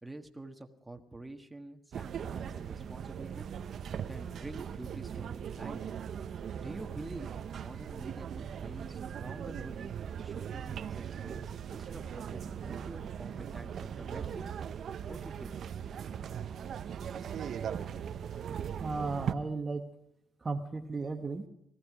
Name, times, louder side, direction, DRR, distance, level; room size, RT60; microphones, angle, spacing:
voice 1, 0.0-3.5 4.1-5.8 6.5-9.9 10.2-14.5 15.1-15.6, right 2 dB, 10° right, 4 dB, 1.5 m, -47 dB
sound 1, 1.9-19.3, right 8 dB, 60° right, 0.7 m, -39 dB
voice 2, 18.8-19.8 20.4-21.4, right 3 dB, 30° right, 4 dB, 1.1 m, -35 dB
19.0 x 14.0 x 4.9 m, 0.81 s
cardioid pair, 90°, 0 cm